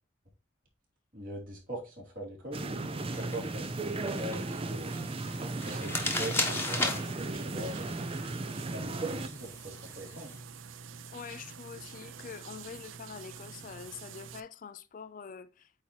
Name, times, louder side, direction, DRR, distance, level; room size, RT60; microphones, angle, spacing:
voice 1, 1.1-2.8 3.1-4.9 5.6-8.0 8.7-10.4, right 1 dB, 45° right, 2.8 m, -41 dB
sound 1, 2.5-9.3, right 2 dB, 30° right, 0.5 m, -36 dB
sound 2, 3.0-10.4, left 2 dB, 10° left, 1.1 m, -37 dB
sound 3, 4.2-14.4, right 6 dB, 85° right, 0.5 m, -48 dB
voice 2, 11.1-15.7, left 6 dB, 45° left, 0.4 m, -45 dB
8.5 x 2.9 x 4.5 m
head